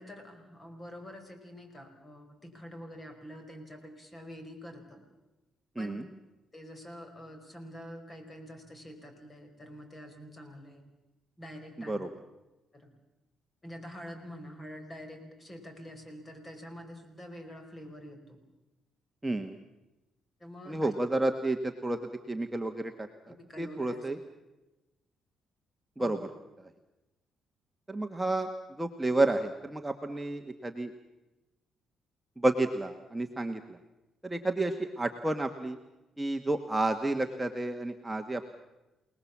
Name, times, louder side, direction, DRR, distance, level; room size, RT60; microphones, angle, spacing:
voice 1, 0.0-5.0 5.8-6.0 6.5-10.8 11.4-12.0 12.7-12.9 13.6-18.4 20.4-20.9 23.3-24.1 26.0-26.2, equal, 25° left, 6 dB, 5.2 m, -46 dB
voice 2, 19.2-19.6 20.7-22.0 22.3-23.1 23.6-24.2 26.0-26.2 27.9-28.5 28.8-30.9 32.4-33.8 34.2-35.8 36.2-38.4, right 2 dB, 10° right, 4 dB, 1.4 m, -30 dB
28.5 x 19.5 x 7.3 m, 1.0 s
cardioid pair, 90°, 0 cm